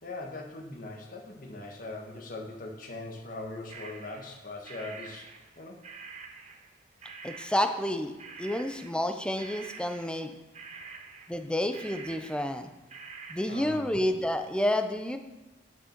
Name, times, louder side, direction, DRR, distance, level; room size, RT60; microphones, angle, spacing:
voice 1, 0.0-5.3 5.6-5.8 10.8-10.9 13.5-13.9, left 2 dB, 45° left, 1 dB, 1.4 m, -41 dB
sound 1, 3.7-6.7 7.0-7.9 8.2-9.1 9.4-13.8, right 5 dB, 35° right, 0.8 m, -47 dB
voice 2, 7.2-8.1 8.4-10.3 11.3-12.7 13.3-15.2, left 1 dB, 5° left, 7 dB, 0.5 m, -29 dB
9.7 x 6.3 x 4.5 m, 1.1 s
head